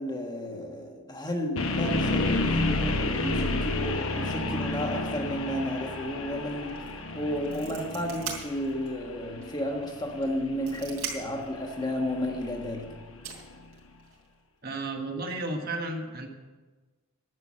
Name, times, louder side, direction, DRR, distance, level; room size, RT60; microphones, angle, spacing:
voice 1, 0.0-6.8 7.1-12.9, left 1 dB, 20° left, 2 dB, 1.4 m, -32 dB
sound 1, 1.6-13.5, left 2 dB, 65° left, 1.1 m, -31 dB
sound 2, 6.7-6.9 7.2-9.0 9.4-9.5 10.2-11.5 12.6-12.7 13.2-14.3, right 6 dB, 75° right, 3.2 m, -39 dB
voice 2, 14.6-16.3, right 2 dB, 45° right, 3 dB, 1.4 m, -33 dB
11.0 x 8.1 x 7.5 m, 1.3 s
head